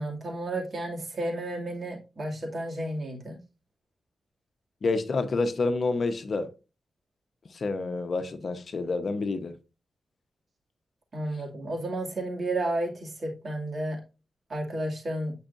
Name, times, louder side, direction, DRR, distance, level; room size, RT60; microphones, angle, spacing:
voice 1, 0.0-3.4 11.1-14.0 14.5-15.3, right 1 dB, 45° right, 2.3 m, -32 dB
voice 2, 4.8-6.5 7.5-9.5, left 3 dB, 55° left, 0.8 m, -28 dB
8.6 x 5.5 x 2.6 m
wide cardioid pair, 95°, 0 cm